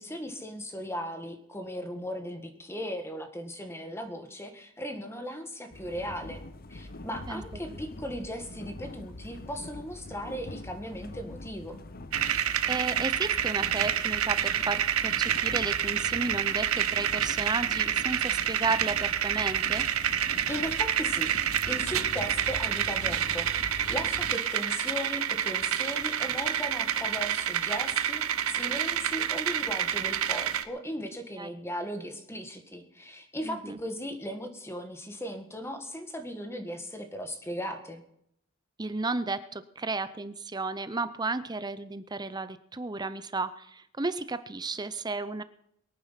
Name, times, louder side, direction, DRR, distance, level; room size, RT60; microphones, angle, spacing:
voice 1, 0.0-6.4 6.7-11.8 20.3-38.0, equal, 10° left, 6 dB, 1.8 m, -37 dB
sound 1, 5.7-24.4, left 2 dB, 45° left, 0.9 m, -43 dB
sound 2, 12.1-30.7, right 9 dB, 90° right, 1.0 m, -28 dB
voice 2, 12.7-19.8 31.4-31.5 33.4-33.8 38.8-45.4, right 3 dB, 20° right, 13 dB, 0.6 m, -33 dB
23.0 x 9.2 x 5.8 m, 0.74 s
head